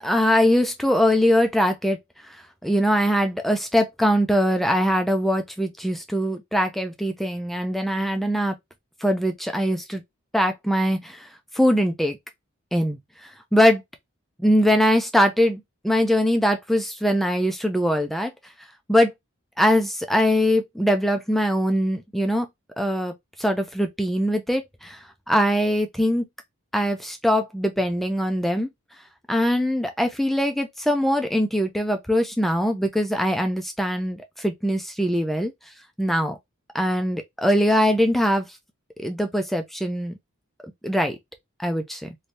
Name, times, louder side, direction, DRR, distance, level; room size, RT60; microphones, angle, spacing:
voice 1, 0.0-2.0 2.2-2.4 2.6-8.5 9.0-10.0 10.3-11.3 11.5-12.2 12.7-13.8 14.4-18.3 18.9-19.1 19.6-22.5 22.8-26.2 26.7-28.7 29.3-35.5 36.0-36.4 36.7-38.5 39.0-40.1 40.8-41.2 41.6-42.1, equal, ahead, 0.4 m, -22 dB
3.2 x 2.7 x 2.7 m
head